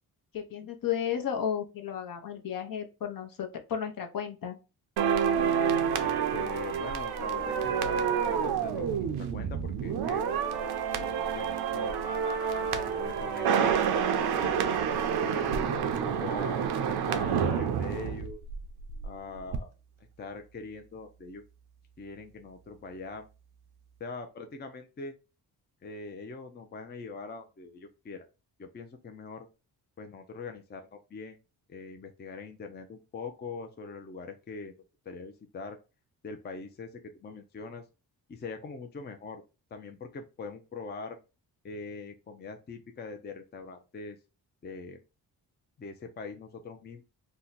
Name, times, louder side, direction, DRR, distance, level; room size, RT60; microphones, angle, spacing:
voice 1, 0.3-4.6, left 8 dB, 60° left, 4 dB, 0.8 m, -33 dB
sound 1, 5.0-19.1 19.4-19.6, right 7 dB, 75° right, 0.6 m, -28 dB
voice 2, 6.0-10.2 11.0-12.0 12.6-13.8 14.3-18.4 19.0-19.7 20.2-21.4 22.0-23.3 24.0-25.1 25.8-28.3 28.6-29.5 30.0-31.4 31.7-34.7 35.1-35.8 36.2-37.8 38.3-39.4 39.7-41.2 41.6-44.2 44.6-45.0 45.8-47.0, left 4 dB, 25° left, 6 dB, 0.5 m, -42 dB
2.8 x 2.1 x 3.8 m, 0.30 s
cardioid pair, 90°, 39 cm